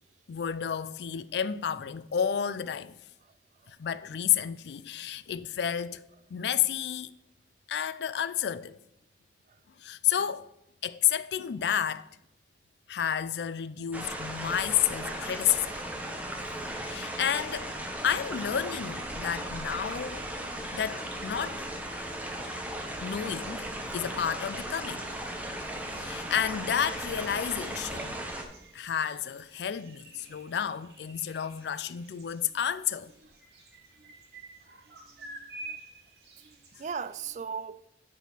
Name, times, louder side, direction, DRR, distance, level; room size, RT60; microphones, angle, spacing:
voice 1, 0.3-3.0 3.7-6.0 6.3-7.1 7.7-8.8 9.8-10.5 10.8-12.1 12.9-15.8 16.8-17.7 18.0-20.2 20.7-21.7 23.0-23.7 23.9-25.1 25.9-28.1 28.7-33.1, left 9 dB, 70° left, 0.4 m, -31 dB
sound 1, 13.9-28.4, right 1 dB, 10° right, 0.8 m, -37 dB
voice 2, 25.6-26.1 34.0-34.1 34.9-35.0 35.6-35.8 36.4-37.9, right 6 dB, 45° right, 0.3 m, -40 dB
sound 2, 26.7-37.4, right 2 dB, 65° right, 1.4 m, -50 dB
9.7 x 3.7 x 5.8 m
head